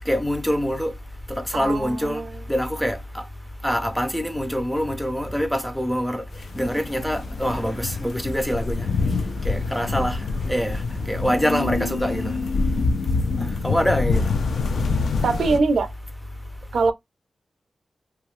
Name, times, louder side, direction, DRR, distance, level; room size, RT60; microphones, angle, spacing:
voice 1, 0.1-0.9 1.3-2.2 2.5-3.2 3.6-6.2 6.6-8.9 9.4-10.2 10.5-10.8 11.1-12.3 13.6-14.2, equal, 5° left, 0.4 m, -24 dB
voice 2, 1.5-2.3 15.2-15.9 16.7-16.9, right 4 dB, 90° right, 0.5 m, -22 dB
sound 1, 6.3-15.6, left 4 dB, 75° left, 0.4 m, -26 dB
sound 2, 6.5-12.9, left 1 dB, 35° left, 0.9 m, -39 dB
2.6 x 2.3 x 3.0 m
wide cardioid pair, 175°, 0 cm